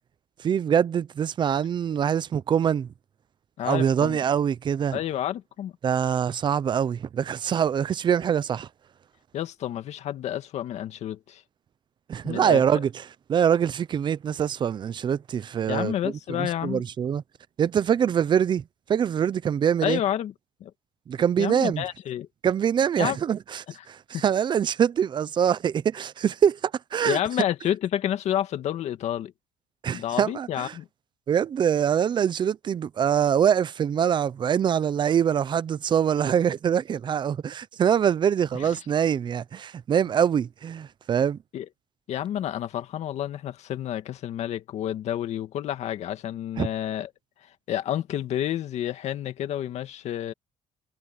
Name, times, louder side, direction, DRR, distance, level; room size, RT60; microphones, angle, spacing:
voice 1, 0.4-2.9 3.6-5.0 5.8-8.7 12.1-17.2 17.6-18.6 18.9-20.0 21.1-21.8 22.4-27.2 29.8-30.8 31.3-41.4 46.6-46.7, right 8 dB, 35° right, 0.7 m, -24 dB
voice 2, 3.6-4.2 4.9-5.7 9.3-11.4 12.2-12.8 15.7-16.8 19.8-20.3 20.6-20.7 21.4-22.3 23.0-23.2 24.1-24.2 27.1-29.3 29.9-30.9 38.6-38.7 41.5-41.7 42.1-47.1 47.7-50.3, left 11 dB, 60° left, 2.0 m, -29 dB
cardioid pair, 130°, 13 cm